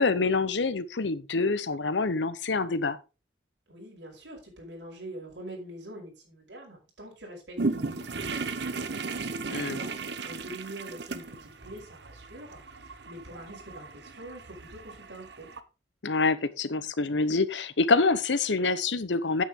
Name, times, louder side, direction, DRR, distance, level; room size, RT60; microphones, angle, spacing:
voice 1, 0.0-3.0 9.5-9.8 16.0-19.4, left 3 dB, 85° left, 0.9 m, -26 dB
voice 2, 3.7-9.0 9.4-12.6 13.1-15.5, right 1 dB, 85° right, 5.4 m, -45 dB
sound 1, 7.6-15.6, right 3 dB, 65° right, 0.9 m, -36 dB
8.9 x 8.4 x 3.7 m
head